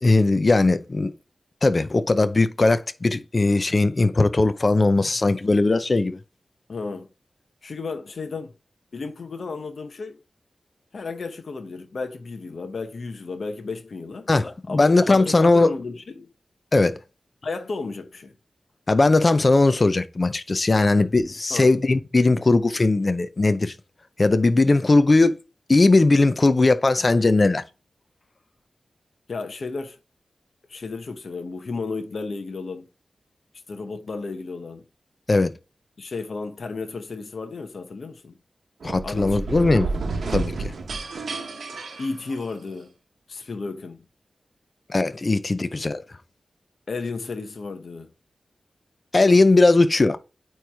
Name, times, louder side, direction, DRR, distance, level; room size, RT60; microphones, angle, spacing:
voice 1, 0.0-1.1 1.6-6.2 14.3-15.7 16.7-16.9 18.9-23.7 24.2-25.4 25.7-27.6 35.3-35.5 38.8-39.9 40.3-40.7 44.9-46.0 49.1-50.2, left 2 dB, 35° left, 0.5 m, -19 dB
voice 2, 6.7-7.1 7.6-8.5 8.9-10.2 10.9-14.3 14.7-16.3 17.4-18.3 21.5-21.8 29.3-30.0 30.7-32.9 33.7-34.8 36.0-38.4 39.0-39.9 42.0-42.9 43.3-44.0 46.9-48.1, left 4 dB, 60° left, 0.8 m, -33 dB
sound 1, 38.8-42.8, right 3 dB, 85° right, 1.0 m, -31 dB
8.9 x 3.1 x 3.4 m
wide cardioid pair, 135°, 0 cm